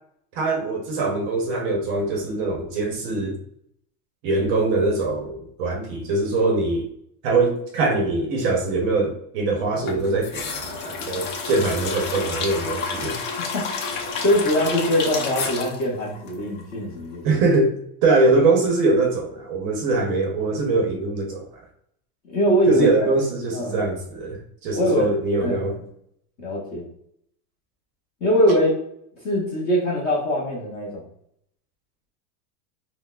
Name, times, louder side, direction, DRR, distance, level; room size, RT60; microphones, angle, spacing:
voice 1, 0.3-3.4 4.2-6.9 7.2-13.2 17.2-17.8 18.0-21.6 22.7-25.8, right 3 dB, 35° right, 2 dB, 0.6 m, -22 dB
sound 1, 9.9-16.9 17.1-17.2, left 4 dB, 55° left, 0.8 m, -30 dB
voice 2, 13.4-13.7 14.2-17.4 22.3-23.1 23.5-23.8 24.7-25.1 25.4-25.7 26.4-26.9 28.2-28.8 29.2-31.0, equal, 20° left, -4 dB, 0.5 m, -22 dB
5.6 x 2.0 x 2.3 m, 0.71 s
supercardioid pair, 165°, 47 cm